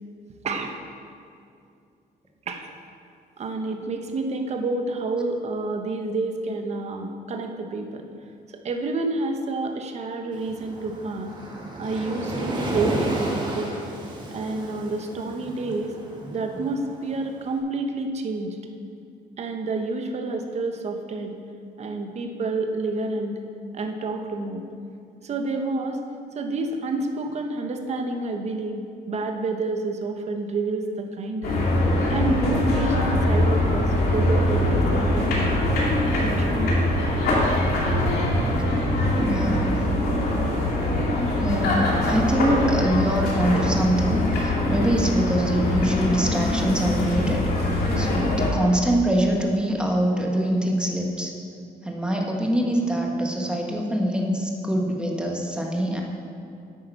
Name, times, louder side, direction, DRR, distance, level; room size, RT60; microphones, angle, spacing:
voice 1, 0.4-0.8 2.5-2.7 3.4-8.0 8.6-11.3 11.8-13.7 14.3-15.9 16.3-18.6 19.4-21.4 21.8-23.4 23.7-24.6 25.2-26.0 26.3-28.8 29.1-31.5 32.1-35.4 36.2-36.8, right 3 dB, 45° right, 4 dB, 1.0 m, -29 dB
Waves surf, 10.3-17.4, right 1 dB, 30° right, 1.7 m, -32 dB
sound 1, 31.4-48.5, left 1 dB, 75° left, 2.3 m, -23 dB
voice 2, 38.5-39.7 41.4-47.4 48.0-51.3 51.8-56.0, right 1 dB, 5° right, 0 dB, 1.3 m, -24 dB
8.7 x 8.7 x 5.4 m, 2.4 s
cardioid pair, 130°, 16 cm